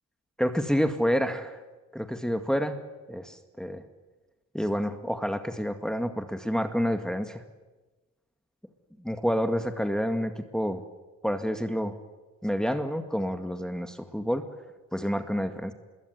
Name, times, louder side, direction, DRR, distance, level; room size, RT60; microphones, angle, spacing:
voice 1, 0.4-1.6 1.9-2.8 3.1-3.8 4.5-7.4 9.0-10.8 11.2-12.0 12.4-14.4 14.9-15.7, equal, ahead, 7 dB, 2.0 m, -28 dB
26.0 x 22.0 x 9.4 m, 1.2 s
cardioid pair, 90°, 30 cm